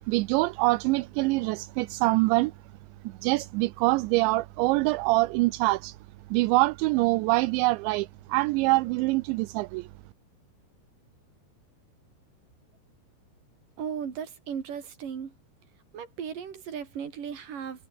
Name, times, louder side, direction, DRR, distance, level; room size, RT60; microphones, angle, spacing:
voice 1, 0.1-2.5 3.0-6.0 6.3-9.9, right 22 dB, 80° right, 2.8 m, -24 dB
voice 2, 13.8-15.3 15.9-17.9, right 7 dB, 45° right, 4.6 m, -36 dB
omnidirectional pair, 5.5 m